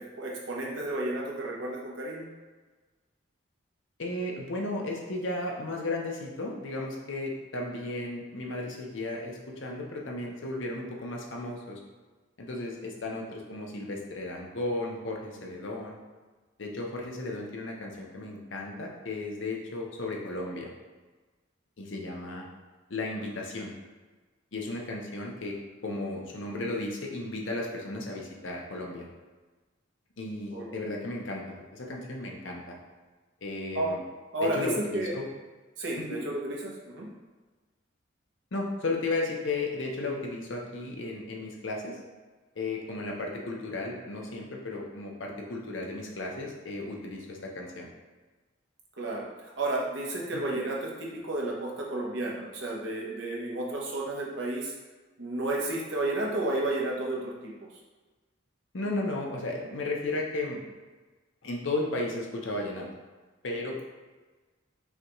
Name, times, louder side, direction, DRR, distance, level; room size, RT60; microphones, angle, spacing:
voice 1, 0.0-2.3 30.5-30.7 33.7-34.0 34.3-35.1 35.8-37.1 49.0-49.3 49.6-54.7 55.2-57.5, right 2 dB, 70° right, -3 dB, 0.9 m, -32 dB
voice 2, 4.0-11.8 12.4-16.0 16.6-20.7 21.8-22.5 22.9-23.7 24.5-25.6 25.8-29.1 30.2-32.8 33.4-34.0 34.4-35.3 36.0-36.2 38.5-42.0 42.6-47.9 50.3-50.4 58.7-60.6 61.4-62.9 63.4-63.8, left 2 dB, 70° left, -1 dB, 0.7 m, -34 dB
5.5 x 2.4 x 3.0 m, 1.3 s
head